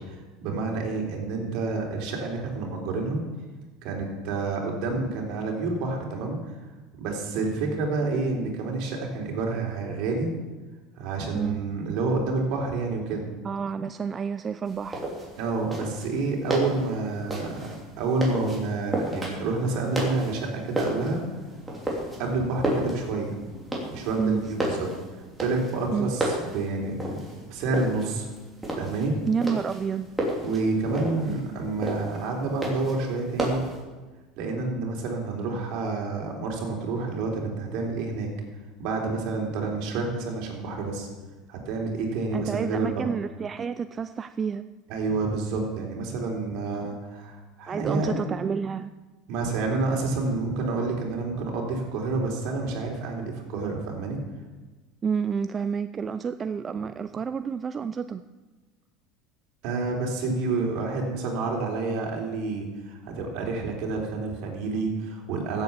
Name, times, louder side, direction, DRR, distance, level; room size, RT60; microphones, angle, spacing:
voice 1, 0.1-3.2 3.8-6.4 7.0-10.3 11.0-13.3 15.4-21.2 22.2-23.3 23.9-24.9 25.4-28.3 28.8-29.1 30.4-33.6 34.4-38.3 38.8-41.1 41.5-43.1 44.9-48.2 49.3-54.2 59.6-65.6, right 3 dB, 60° right, 0 dB, 3.6 m, -29 dB
voice 2, 13.4-15.0 24.2-24.5 25.9-26.1 29.3-30.1 42.3-44.6 46.7-47.0 47.7-48.9 55.0-58.2, right 6 dB, 25° right, 11 dB, 0.4 m, -29 dB
sound 1, 14.7-33.8, right 1 dB, 10° right, 3.3 m, -32 dB
15.0 x 8.0 x 6.9 m, 1.3 s
supercardioid pair, 130°, 0 cm